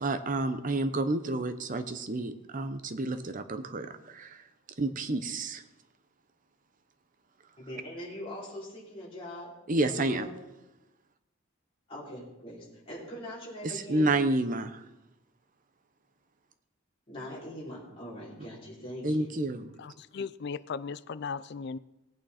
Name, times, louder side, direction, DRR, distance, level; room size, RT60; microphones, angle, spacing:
voice 1, 0.0-4.4 4.8-5.6 9.7-10.3 13.6-14.8 19.0-19.7, right 2 dB, 40° right, 9 dB, 0.8 m, -30 dB
voice 2, 7.6-9.5 10.1-10.4 11.9-14.1 17.1-19.3, equal, 25° left, -7 dB, 3.9 m, -42 dB
voice 3, 19.8-21.8, left 5 dB, 55° left, 17 dB, 0.4 m, -37 dB
18.5 x 8.9 x 4.3 m, 0.96 s
head